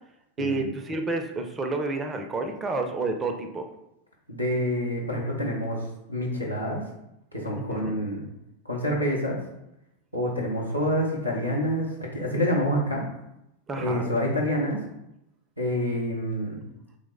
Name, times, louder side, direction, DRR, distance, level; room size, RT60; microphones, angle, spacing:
voice 1, 0.4-3.7 7.6-8.0 13.7-14.1, right 3 dB, 20° right, 5 dB, 0.4 m, -30 dB
voice 2, 4.3-6.8 7.3-8.2 8.6-9.4 10.1-13.0 13.8-14.8 15.6-16.6, equal, 90° left, -3 dB, 0.7 m, -27 dB
3.1 x 2.0 x 3.5 m, 0.85 s
figure-of-eight pair, 90°, 0 cm